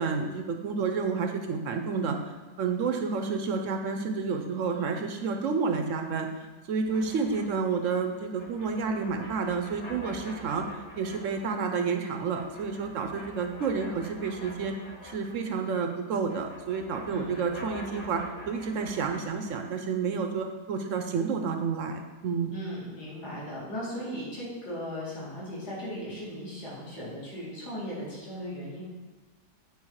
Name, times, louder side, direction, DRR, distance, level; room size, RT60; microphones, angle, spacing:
voice 1, 0.0-10.7 11.0-14.8 15.0-22.5, right 5 dB, 65° right, 5 dB, 0.8 m, -30 dB
sound 1, 6.8-15.8 16.0-19.7, left 1 dB, 40° left, 1.6 m, -46 dB
voice 2, 17.1-17.5 22.5-28.8, equal, 65° left, -7 dB, 3.1 m, -37 dB
8.6 x 4.8 x 4.7 m, 1.2 s
omnidirectional pair, 1.9 m